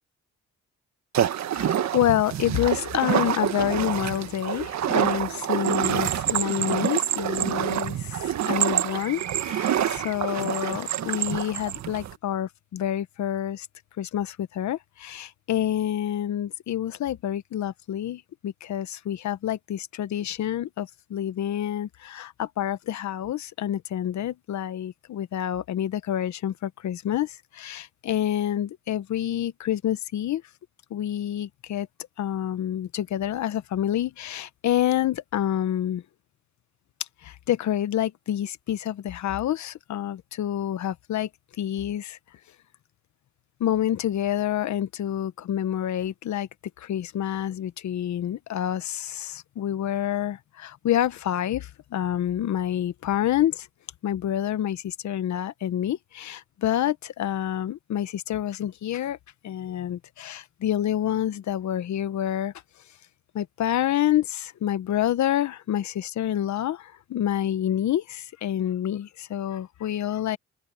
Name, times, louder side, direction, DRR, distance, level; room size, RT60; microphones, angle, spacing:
sound 1, 1.1-12.2, right 10 dB, 65° right, 1.7 m, -27 dB
voice 1, 1.5-13.7 14.0-30.4 30.9-31.9 32.2-36.0 37.2-41.3 41.6-42.2 43.6-46.5 46.8-53.7 54.0-59.2 59.4-62.5 63.3-70.4, left 11 dB, 70° left, 1.3 m, -28 dB
Bell, 5.6-8.1 8.4-9.9 10.4-11.8, right 13 dB, 85° right, 1.5 m, -29 dB
open air
cardioid pair, 90°, 30 cm